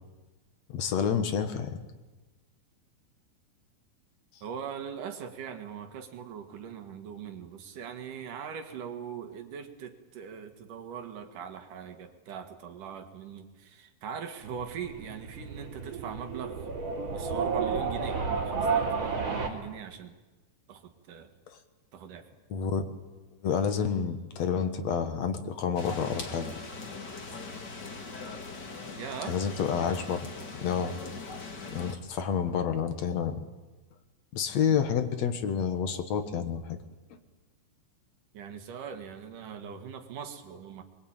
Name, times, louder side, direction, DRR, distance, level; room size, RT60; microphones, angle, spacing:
voice 1, 0.7-1.8 22.5-22.8 23.4-26.5 29.3-30.3 30.6-30.9 31.7-33.4 34.3-36.8, left 7 dB, 60° left, 8 dB, 2.5 m, -29 dB
voice 2, 4.4-16.7 17.1-20.2 20.7-21.3 21.9-22.3 29.0-29.4 38.3-40.8, right 7 dB, 85° right, 6 dB, 3.4 m, -41 dB
sound 1, 14.4-19.5, right 5 dB, 50° right, 3.8 m, -31 dB
sound 2, 25.8-32.0, left 4 dB, 35° left, 2.5 m, -41 dB
24.0 x 22.5 x 8.9 m, 1.2 s
omnidirectional pair, 3.6 m